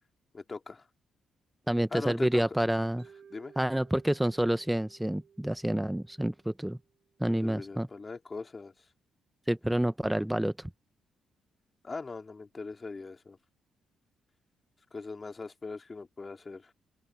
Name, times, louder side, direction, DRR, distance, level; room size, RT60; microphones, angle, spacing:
voice 1, 0.3-0.9 1.9-2.4 3.3-3.5 7.3-8.7 11.8-13.4 14.9-16.7, left 4 dB, 30° left, 2.4 m, -40 dB
voice 2, 1.7-3.1 3.6-6.8 7.2-7.9 9.5-10.7, right 1 dB, 5° right, 0.7 m, -28 dB
Mallet percussion, 3.0-7.1, right 7 dB, 55° right, 4.6 m, -57 dB
cardioid pair, 80°, 0 cm